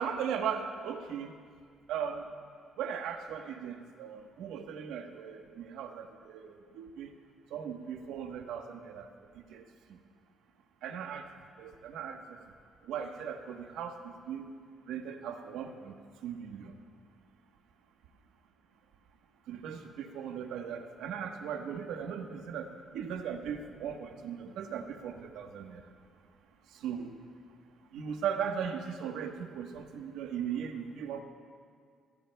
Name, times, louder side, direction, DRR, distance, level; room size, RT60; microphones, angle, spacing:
voice 1, 0.0-1.3 1.9-2.3 2.8-7.1 7.5-9.1 9.5-9.6 9.9-10.0 10.8-11.3 11.6-12.4 12.8-14.5 14.9-16.0 16.2-16.7 19.5-25.8 26.7-27.1 27.9-31.2, right 7 dB, 90° right, 5 dB, 1.1 m, -38 dB
28.0 x 16.0 x 2.3 m, 2.1 s
cardioid pair, 90°, 0 cm